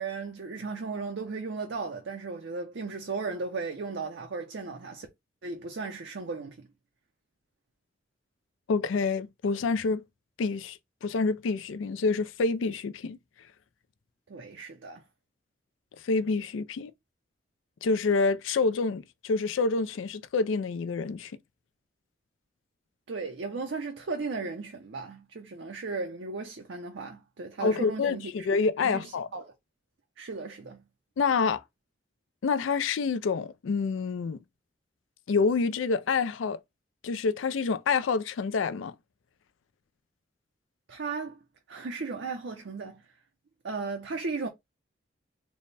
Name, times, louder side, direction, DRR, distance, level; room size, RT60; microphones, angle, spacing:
voice 1, 0.0-5.1 5.4-6.7 14.3-15.0 23.1-28.5 28.8-29.5 30.2-30.8 40.9-41.4 41.7-43.0 43.6-44.5, right 4 dB, 70° right, 0.6 m, -36 dB
voice 2, 8.7-10.0 10.4-13.2 16.0-16.9 17.8-21.3 27.6-29.3 31.2-31.6 32.4-34.4 35.3-36.6 37.0-38.9, left 4 dB, 90° left, 0.4 m, -27 dB
3.4 x 2.1 x 4.0 m
head